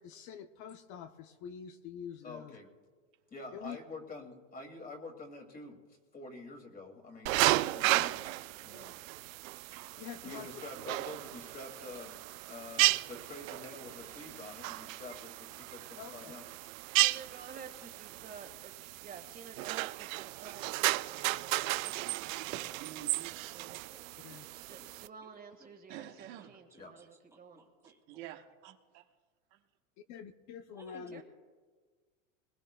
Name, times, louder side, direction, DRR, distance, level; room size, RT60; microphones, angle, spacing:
voice 1, 0.0-2.6 3.5-3.8 7.9-8.1 10.0-10.5 16.0-16.3 24.2-24.5 30.1-31.2, left 8 dB, 45° left, 8 dB, 0.7 m, -46 dB
voice 2, 2.2-2.7 3.3-5.8 6.1-9.0 10.2-12.2 12.4-16.5 26.8-26.9, left 2 dB, 20° left, 2 dB, 2.3 m, -47 dB
sound 1, 7.3-25.1, right 19 dB, 80° right, 0.5 m, -34 dB
voice 3, 17.0-22.7 23.5-23.8 24.6-27.6 31.0-31.2, right 6 dB, 25° right, 5 dB, 1.7 m, -51 dB
voice 4, 22.5-23.4 24.5-24.7 25.9-26.5 27.8-28.7, right 12 dB, 60° right, 5 dB, 1.2 m, -48 dB
voice 5, 23.9-24.4 24.7-25.1 27.6-27.9 30.8-31.2, right 3 dB, 5° right, 3 dB, 1.9 m, -58 dB
21.0 x 20.5 x 2.2 m, 1.5 s
supercardioid pair, 125°, 39 cm